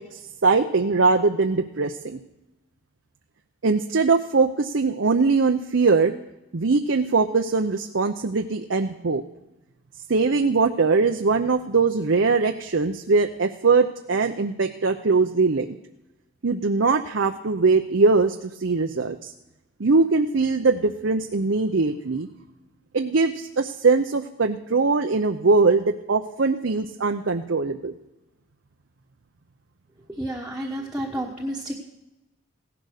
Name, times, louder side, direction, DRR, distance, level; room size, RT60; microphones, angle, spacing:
voice 1, 0.1-2.2 3.6-6.1 6.5-9.2 10.1-15.8 16.4-19.3 19.8-22.3 22.9-27.9, right 4 dB, 60° right, 5 dB, 0.7 m, -21 dB
voice 2, 30.2-31.7, right 1 dB, 5° right, -4 dB, 1.3 m, -30 dB
16.5 x 11.0 x 6.5 m, 0.99 s
head